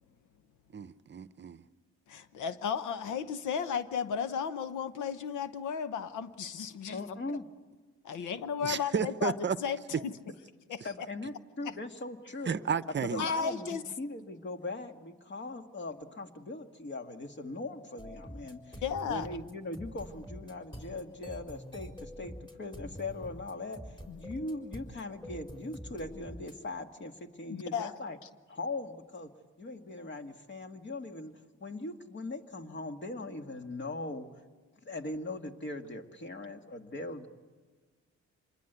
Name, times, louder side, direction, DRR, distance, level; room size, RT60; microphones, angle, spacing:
voice 1, 0.7-1.6 8.6-9.6 12.4-13.3, right 6 dB, 35° right, 13 dB, 0.8 m, -32 dB
voice 2, 2.1-7.1 8.0-9.3 9.6-10.1 10.7-11.1 11.6-11.7 13.2-13.8 18.8-19.3 24.1-24.2 27.5-28.0, left 7 dB, 75° left, 12 dB, 1.1 m, -34 dB
voice 3, 6.9-7.5 10.8-12.6 13.0-23.8 24.2-28.2 28.5-29.3 29.6-31.3 31.6-34.3 34.8-37.3, left 2 dB, 40° left, 5 dB, 2.0 m, -40 dB
sound 1, 18.0-26.5, equal, 15° left, 4.4 m, -46 dB
26.5 x 21.0 x 8.2 m, 1.4 s
cardioid pair, 90°, 30 cm